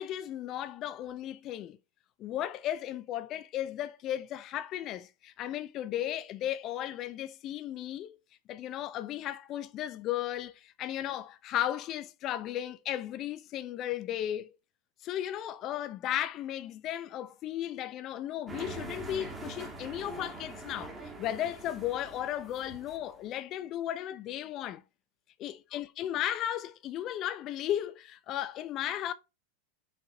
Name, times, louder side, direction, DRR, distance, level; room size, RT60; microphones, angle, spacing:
voice 1, 0.0-1.8 2.2-8.2 8.5-14.5 15.0-24.8 25.4-29.1, left 12 dB, 40° left, 0.5 m, -35 dB
sound 1, 18.5-23.3, right 2 dB, 15° right, 1.6 m, -43 dB
5.8 x 4.0 x 2.3 m
hypercardioid pair, 90°, 0 cm